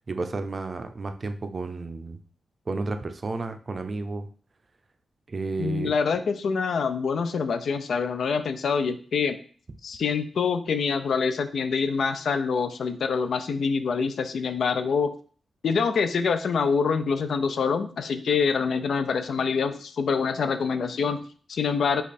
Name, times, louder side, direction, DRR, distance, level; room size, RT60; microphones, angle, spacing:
voice 1, 0.1-2.2 2.7-4.3 5.3-6.2, right 3 dB, 35° right, 8 dB, 0.4 m, -32 dB
voice 2, 5.6-9.4 9.8-15.1 15.6-22.0, left 5 dB, 70° left, 10 dB, 0.4 m, -25 dB
5.2 x 2.4 x 4.1 m, 0.43 s
wide cardioid pair, 125°, 0 cm